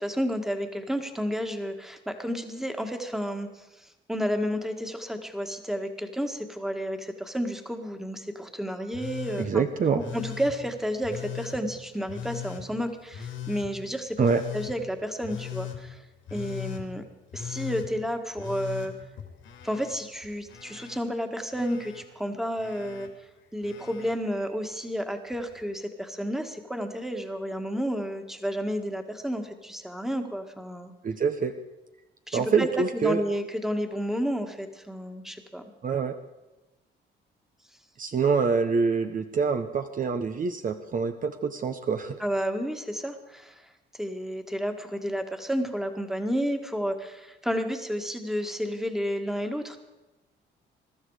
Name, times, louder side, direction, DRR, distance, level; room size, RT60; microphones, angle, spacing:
voice 1, 0.0-3.6 4.1-9.6 10.1-14.3 14.5-16.0 16.3-17.0 17.3-18.9 19.6-23.1 23.5-30.9 32.3-35.6 42.2-43.6 44.0-49.8, equal, ahead, 5 dB, 1.8 m, -31 dB
Telephone, 8.9-9.5 10.0-10.5 11.0-11.6 12.1-12.6 13.1-13.7 14.2-14.7 15.2-15.8 16.3-16.8 17.3-17.9 18.4-19.9 20.2-21.0 21.5-22.0 22.6-23.1 23.6-24.1 25.3-25.4, left 9 dB, 80° left, 2.7 m, -38 dB
voice 2, 9.4-10.0 14.2-14.4 31.0-31.5 32.3-33.2 35.8-36.1 38.0-42.2, right 5 dB, 45° right, 7 dB, 0.9 m, -25 dB
22.0 x 12.0 x 4.9 m, 1.1 s
cardioid pair, 90°, 20 cm